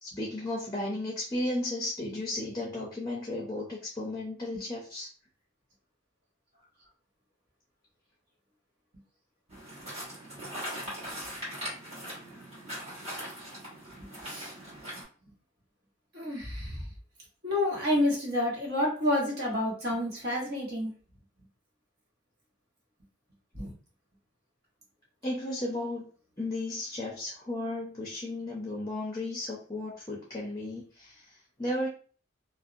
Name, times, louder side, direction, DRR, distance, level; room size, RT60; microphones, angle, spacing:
voice 1, 0.0-5.1 25.2-26.1 26.4-31.9, left 1 dB, 20° left, -3 dB, 0.5 m, -34 dB
sound 1, 9.5-15.0, equal, 35° right, 1.4 m, -40 dB
voice 2, 14.2-14.5 16.1-16.9 17.4-20.9 23.5-23.7, left 1 dB, 50° right, -4 dB, 1.1 m, -29 dB
2.6 x 2.0 x 2.4 m, 0.40 s
head